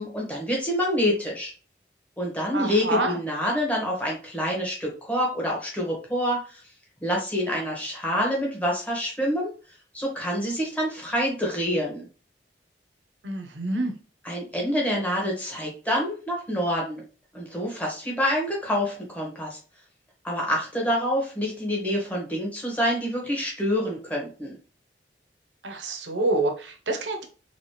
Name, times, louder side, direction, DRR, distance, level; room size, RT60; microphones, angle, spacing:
voice 1, 0.0-1.5 2.2-6.6 7.0-9.5 9.9-12.0 14.3-17.0 17.3-19.6 20.2-24.6, equal, 10° left, -2 dB, 1.6 m, -27 dB
voice 2, 2.5-3.2 13.2-13.9 25.6-27.2, right 2 dB, 80° right, 5 dB, 1.0 m, -27 dB
4.2 x 3.6 x 3.3 m, 0.36 s
head